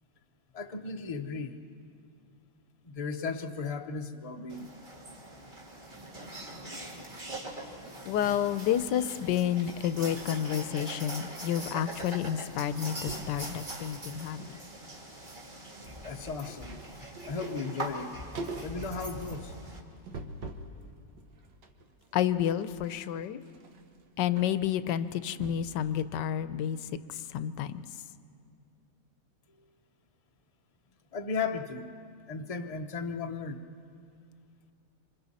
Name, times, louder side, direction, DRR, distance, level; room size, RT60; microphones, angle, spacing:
voice 1, 0.5-1.6 2.8-4.7 16.0-16.8 17.3-18.1 18.6-19.5 31.1-31.9 32.3-33.6, left 4 dB, 35° left, 6 dB, 0.5 m, -35 dB
sound 1, 4.5-19.8, right 1 dB, 30° right, 1.9 m, -42 dB
voice 2, 8.0-14.6 22.1-23.4 24.2-27.9, left 10 dB, 85° left, 13 dB, 1.3 m, -30 dB
sound 2, 9.6-11.8 12.0-12.3 12.6-13.4 13.9-14.6 14.9-20.8 21.2-25.8 26.2-26.3, right 3 dB, 85° right, 1.9 m, -45 dB
26.5 x 26.0 x 4.1 m, 2.4 s
omnidirectional pair, 1.8 m